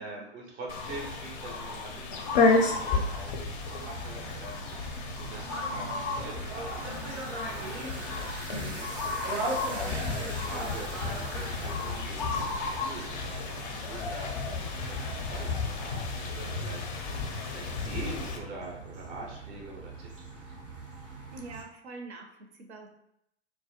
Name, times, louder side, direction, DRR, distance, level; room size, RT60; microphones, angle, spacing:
voice 1, 0.0-8.9 9.4-20.5, right 2 dB, 20° right, -1 dB, 0.4 m, -44 dB
sound 1, 0.7-18.4, left 4 dB, 40° left, 0.4 m, -32 dB
sound 2, 3.5-21.6, right 2 dB, 85° right, 0.9 m, -40 dB
voice 2, 21.3-22.9, right 3 dB, 65° right, 4 dB, 0.6 m, -45 dB
2.2 x 2.0 x 2.8 m, 0.78 s
figure-of-eight pair, 105°, 35 cm